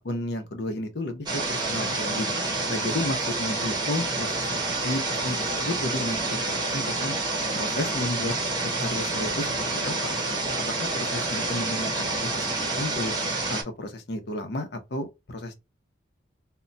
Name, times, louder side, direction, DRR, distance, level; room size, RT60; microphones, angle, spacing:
voice 1, 0.0-2.3 2.7-4.4 4.8-7.1 7.5-8.3 8.6-10.2 10.7-12.5 12.8-13.1 13.5-15.6, left 1 dB, 60° left, 0.6 m, -32 dB
sound 1, 1.3-13.6, right 2 dB, 20° right, 0.7 m, -28 dB
2.2 x 2.2 x 3.8 m
head